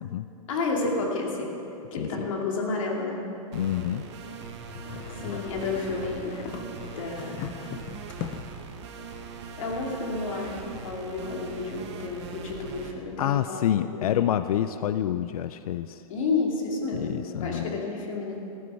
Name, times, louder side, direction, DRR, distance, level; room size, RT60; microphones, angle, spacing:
voice 1, 0.5-1.5 1.9-3.2 5.2-6.6 7.0-7.5 9.6-14.1 16.1-17.1 17.4-18.4, left 3 dB, 65° left, -1 dB, 2.6 m, -31 dB
voice 2, 3.5-4.0 13.2-16.0 16.9-17.8, left 10 dB, 85° left, 12 dB, 0.4 m, -27 dB
sound 1, 3.5-12.9, right 5 dB, 50° right, 1.4 m, -41 dB
sound 2, 4.6-8.7, left 10 dB, 25° left, 0.3 m, -39 dB
15.0 x 9.5 x 5.7 m, 2.9 s
supercardioid pair, 165°, 18 cm